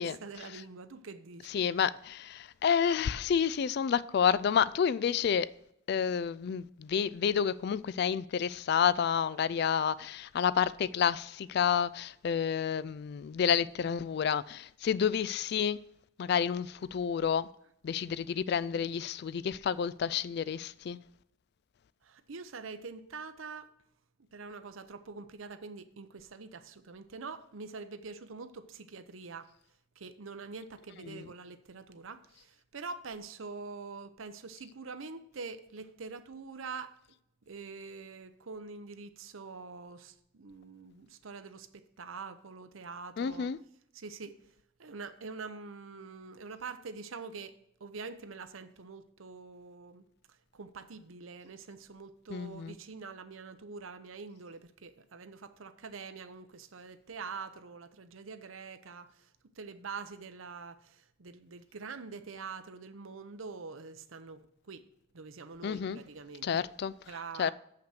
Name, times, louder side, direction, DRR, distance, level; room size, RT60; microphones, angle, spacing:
voice 1, 0.0-1.5 22.0-23.7 24.3-29.5 30.0-36.9 37.5-43.5 43.9-44.5 44.8-47.5 47.8-50.0 50.5-59.3 59.6-64.8 65.1-66.7 67.1-67.5, right 4 dB, 80° right, 0.7 m, -45 dB
voice 2, 1.5-5.5 5.9-15.8 16.2-17.5 17.8-21.0 31.1-31.2 43.2-43.6 52.3-52.8 65.6-66.0 66.4-66.9 67.4-67.5, left 7 dB, 55° left, 0.3 m, -29 dB
7.6 x 5.8 x 6.5 m
head